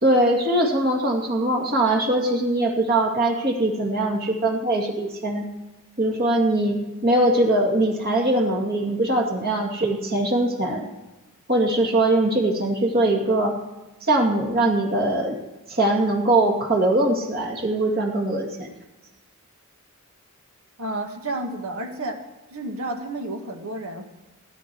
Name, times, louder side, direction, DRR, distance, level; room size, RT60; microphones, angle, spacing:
voice 1, 0.0-5.5 6.0-10.8 11.5-13.6 14.1-15.4 15.7-18.7, right 1 dB, 45° right, 1 dB, 2.3 m, -21 dB
voice 2, 20.8-22.2 22.5-24.0, right 2 dB, 75° right, 4 dB, 1.8 m, -31 dB
17.5 x 9.8 x 4.7 m, 1.1 s
head